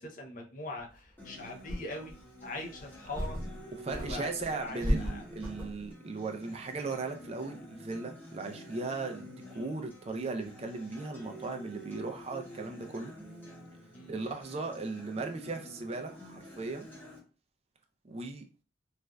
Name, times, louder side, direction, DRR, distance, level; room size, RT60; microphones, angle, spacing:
voice 1, 0.0-2.1 2.4-3.4 3.8-4.3 4.6-5.2 9.5-9.7 13.9-14.3, left 2 dB, 45° left, 2 dB, 0.6 m, -42 dB
sound 1, 1.0-1.1 1.7-2.2 2.8-3.6 3.9-5.9, equal, 20° right, 0.9 m, -34 dB
Acoustic guitar, 1.2-17.2, left 1 dB, 10° left, 0.9 m, -49 dB
voice 2, 3.7-13.1 14.1-16.9 18.0-18.4, right 3 dB, 35° right, 5 dB, 0.4 m, -37 dB
3.2 x 2.4 x 2.2 m, 0.35 s
head